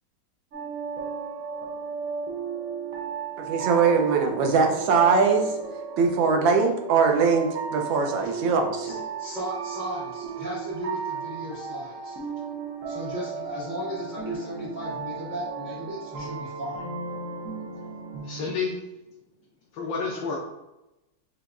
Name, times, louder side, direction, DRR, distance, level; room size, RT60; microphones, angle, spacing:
sound 1, 0.5-18.5, right 5 dB, 55° right, 1.0 m, -35 dB
voice 1, 3.4-5.5 6.0-9.0, right 5 dB, 90° right, 3 dB, 1.4 m, -22 dB
voice 2, 8.8-12.2 12.9-16.8, equal, 25° right, -11 dB, 1.4 m, -36 dB
voice 3, 18.2-18.8 19.7-20.4, left 5 dB, 80° left, -3 dB, 1.4 m, -29 dB
5.5 x 2.9 x 2.4 m, 0.96 s
omnidirectional pair, 2.0 m